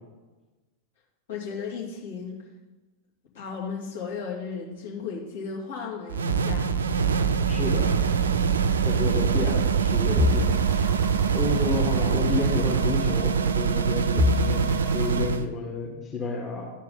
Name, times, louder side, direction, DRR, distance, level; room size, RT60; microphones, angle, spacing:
voice 1, 1.3-2.4 3.3-6.8, left 5 dB, 60° left, -2 dB, 2.6 m, -35 dB
sound 1, 6.1-15.5, right 6 dB, 70° right, 0.5 m, -24 dB
voice 2, 7.5-7.9 8.8-10.6 11.2-14.6 14.9-16.7, left 4 dB, 25° left, -2 dB, 1.7 m, -30 dB
sound 2, 7.9-9.8 10.2-13.9 14.2-15.1, left 4 dB, 15° right, 0.9 m, -31 dB
13.0 x 4.7 x 5.6 m, 1.2 s
figure-of-eight pair, 90°, 0 cm